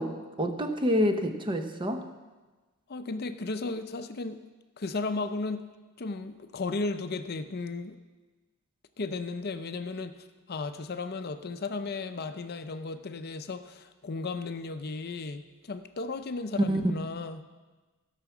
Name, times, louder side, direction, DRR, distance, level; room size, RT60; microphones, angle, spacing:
voice 1, 0.0-2.1 16.7-16.8, equal, 20° right, 6 dB, 0.8 m, -28 dB
voice 2, 2.9-4.4 4.8-5.7 6.0-8.0 9.0-10.2 10.5-17.4, left 3 dB, 45° left, 9 dB, 0.5 m, -35 dB
15.5 x 5.9 x 7.1 m, 1.2 s
head